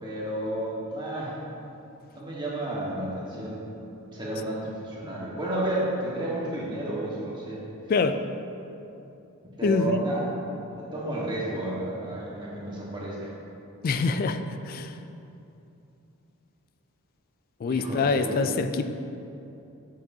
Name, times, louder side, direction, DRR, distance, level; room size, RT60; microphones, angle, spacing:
voice 1, 0.0-1.3 2.1-3.6 4.1-7.6 9.6-10.2 10.7-13.3 17.7-18.4, right 1 dB, 20° right, -6 dB, 1.4 m, -31 dB
voice 2, 7.9-8.2 9.6-10.0 13.8-15.0 17.6-18.8, left 4 dB, 40° left, 9 dB, 0.3 m, -25 dB
7.4 x 7.4 x 2.7 m, 2.8 s
head